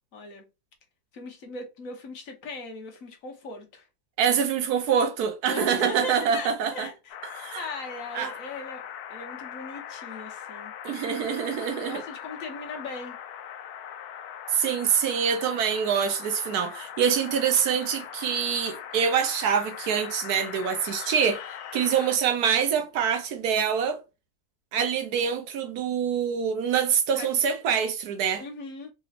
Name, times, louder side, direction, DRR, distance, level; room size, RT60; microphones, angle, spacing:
voice 1, 0.1-0.4 1.1-3.8 5.5-7.1 7.5-10.7 11.7-13.2 27.1-27.3 28.4-28.9, left 2 dB, 60° left, 1.4 m, -38 dB
voice 2, 4.2-6.9 7.4-7.7 8.1-8.3 10.8-12.0 14.5-21.4 21.7-24.0 24.7-28.4, right 7 dB, 85° right, 1.3 m, -25 dB
sound 1, 7.1-22.2, left 9 dB, 85° left, 1.1 m, -40 dB
3.9 x 3.0 x 2.5 m
omnidirectional pair, 1.6 m